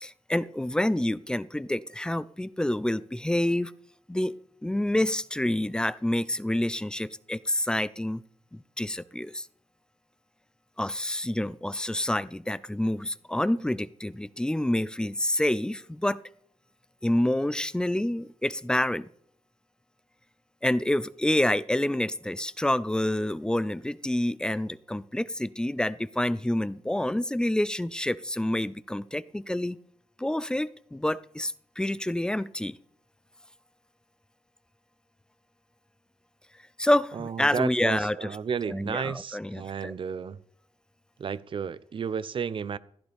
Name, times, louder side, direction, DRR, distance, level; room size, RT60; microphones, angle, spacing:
voice 1, 0.0-3.7 4.1-8.2 8.5-9.5 10.8-16.2 17.0-19.1 20.6-29.8 30.2-32.8 36.8-38.3 38.7-39.9, left 1 dB, 5° left, 0.5 m, -28 dB
voice 2, 37.1-40.4 41.2-42.8, right 6 dB, 50° right, 0.6 m, -32 dB
15.5 x 15.0 x 3.5 m
wide cardioid pair, 125°, 12 cm